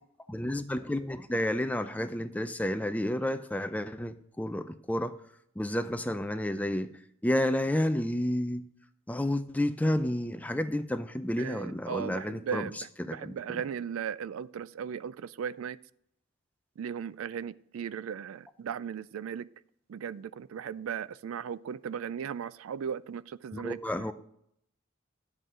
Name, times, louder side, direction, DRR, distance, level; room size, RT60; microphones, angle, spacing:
voice 1, 0.3-5.1 5.6-6.9 7.2-8.6 9.1-13.6 23.5-24.1, left 1 dB, 5° left, 0.4 m, -31 dB
voice 2, 11.4-15.8 16.8-19.5 19.9-23.9, right 7 dB, 85° right, 0.3 m, -37 dB
11.0 x 7.8 x 3.7 m
head